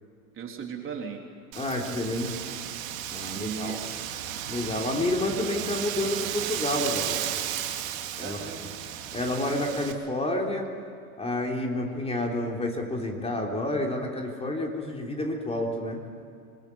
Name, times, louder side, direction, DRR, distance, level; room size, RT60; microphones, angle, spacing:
voice 1, 0.3-1.2 3.3-4.0 8.2-8.7, right 6 dB, 30° right, 2 dB, 3.7 m, -37 dB
Wind, 1.5-9.9, right 11 dB, 65° right, 2.5 m, -34 dB
voice 2, 1.6-2.4 3.1-3.8 4.5-7.2 8.2-8.4 9.1-10.7 11.2-16.0, left 1 dB, 15° left, 1 dB, 3.6 m, -29 dB
26.0 x 21.0 x 9.7 m, 2.5 s
hypercardioid pair, 95°, 44 cm